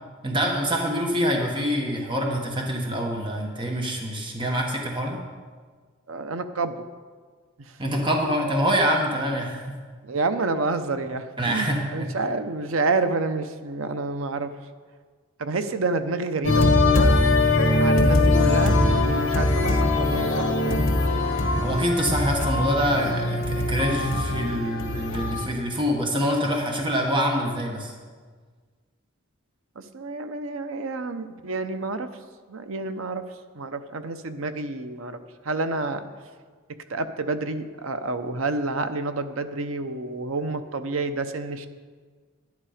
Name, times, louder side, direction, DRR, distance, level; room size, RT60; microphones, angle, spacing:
voice 1, 0.2-5.2 7.8-9.6 11.4-12.1 21.6-27.9, equal, 25° right, 0 dB, 1.2 m, -25 dB
voice 2, 6.1-6.8 7.7-7.8 10.0-14.5 15.4-16.7 17.8-20.9 29.8-32.1 32.5-33.2 33.6-35.2 35.4-36.0 36.9-41.7, right 3 dB, 70° right, 9 dB, 0.7 m, -29 dB
sound 1, 16.4-25.5, left 2 dB, 60° left, 1.6 m, -21 dB
11.0 x 10.5 x 5.0 m, 1.5 s
head